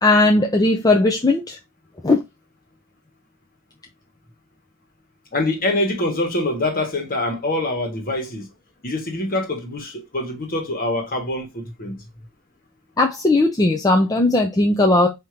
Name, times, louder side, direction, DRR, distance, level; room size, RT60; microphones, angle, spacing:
voice 1, 0.0-1.6 2.0-2.2 13.0-15.1, left 2 dB, 15° left, 0.5 m, -17 dB
voice 2, 5.3-8.5 8.8-12.0, left 2 dB, 40° left, 1.5 m, -24 dB
5.3 x 2.9 x 3.2 m
head